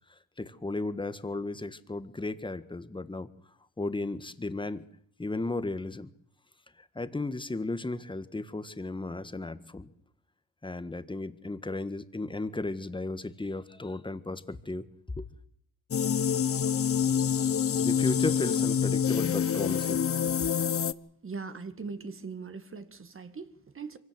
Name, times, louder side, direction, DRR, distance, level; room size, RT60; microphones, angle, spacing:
voice 1, 0.4-3.3 3.8-4.9 5.2-6.1 6.9-9.9 10.6-14.8 15.2-15.3 17.8-20.1, left 2 dB, 15° left, 1.5 m, -34 dB
sound 1, 15.9-20.9, left 7 dB, 35° left, 0.8 m, -27 dB
voice 2, 21.2-24.0, right 4 dB, 35° right, 1.9 m, -40 dB
24.0 x 17.0 x 7.7 m
cardioid pair, 80°, 37 cm